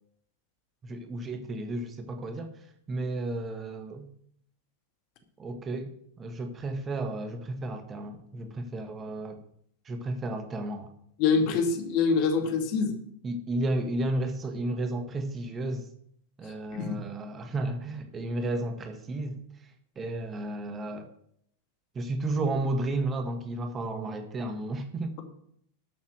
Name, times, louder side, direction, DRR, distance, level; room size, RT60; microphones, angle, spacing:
voice 1, 0.8-4.1 5.4-5.9 6.2-9.4 9.8-10.9 13.2-15.9 16.4-21.1 21.9-25.2, right 2 dB, 20° right, 7 dB, 1.6 m, -33 dB
voice 2, 11.2-12.9 16.7-17.0, left 5 dB, 45° left, 5 dB, 2.3 m, -25 dB
12.5 x 7.3 x 6.5 m, 0.68 s
figure-of-eight pair, 90°, 0 cm